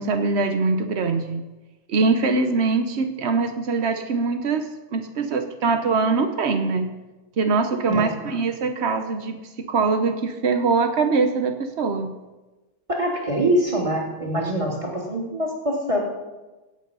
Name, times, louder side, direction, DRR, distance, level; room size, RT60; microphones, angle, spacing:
voice 1, 0.0-1.4 1.9-4.6 4.9-6.9 7.4-12.1, right 4 dB, 80° right, 7 dB, 0.6 m, -23 dB
voice 2, 12.9-16.0, right 1 dB, 15° right, -2 dB, 3.1 m, -24 dB
17.0 x 8.5 x 5.5 m, 1.1 s
omnidirectional pair, 2.3 m